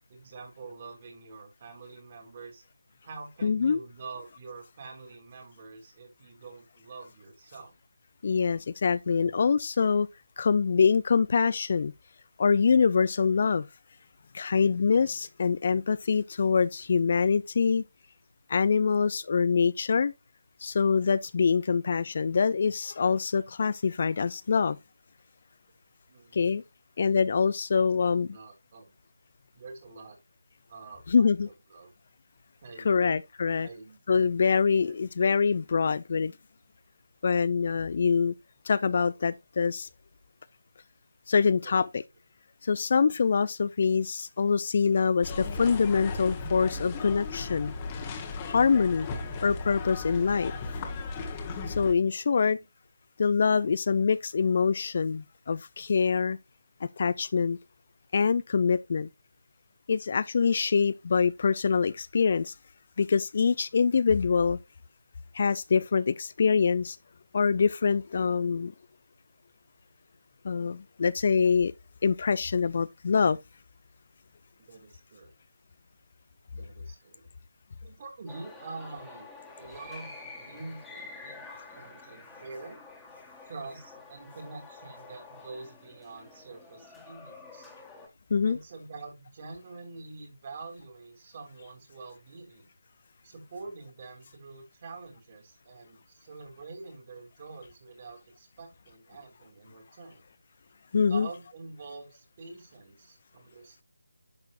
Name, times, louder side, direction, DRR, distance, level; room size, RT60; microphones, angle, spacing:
voice 1, 0.1-2.6 3.0-7.7 9.1-9.3 21.4-21.5 26.1-26.6 27.7-28.9 29.5-30.2 30.7-31.3 31.7-31.9 32.6-33.1 33.4-34.0 34.8-35.1 41.6-41.8 49.2-49.3 52.3-52.7 74.6-75.3 76.5-77.3 77.8-79.3 79.6-82.8 83.4-87.7 88.4-92.7 93.2-100.2 101.0-103.8, right 3 dB, 35° right, 3.3 m, -46 dB
voice 2, 3.4-3.8 8.2-10.1 10.4-11.9 12.4-13.7 14.3-17.8 18.5-20.1 20.6-24.8 26.3-26.6 27.0-28.3 31.1-31.5 32.8-33.7 34.1-36.3 37.2-38.3 38.6-39.9 41.3-42.0 42.6-47.7 48.5-49.1 49.4-50.5 51.7-52.6 53.2-56.4 56.8-57.6 58.1-59.1 59.9-62.5 63.0-64.6 65.3-67.0 67.3-68.7 70.4-71.7 72.0-73.4 88.3-88.6 100.9-101.3, left 5 dB, 40° left, 0.5 m, -25 dB
sound 1, 45.2-51.9, left 3 dB, 20° left, 1.5 m, -36 dB
sound 2, 78.3-88.1, left 3 dB, 5° left, 1.9 m, -48 dB
10.5 x 6.8 x 2.6 m
figure-of-eight pair, 160°, 0 cm